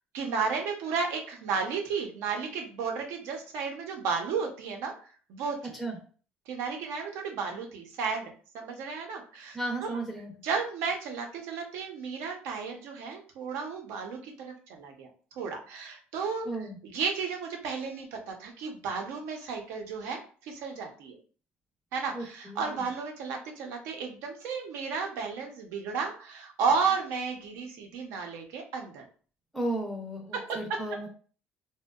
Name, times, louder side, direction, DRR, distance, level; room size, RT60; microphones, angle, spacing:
voice 1, 0.1-4.9 5.3-5.6 6.5-9.9 10.4-16.5 16.8-21.2 21.9-29.0 30.3-30.8, right 5 dB, 90° right, 3 dB, 0.6 m, -33 dB
voice 2, 9.5-10.3 16.5-16.8 22.1-22.9 29.5-31.1, right 1 dB, ahead, 0 dB, 0.4 m, -34 dB
2.7 x 2.1 x 2.2 m, 0.41 s
cardioid pair, 125°, 4 cm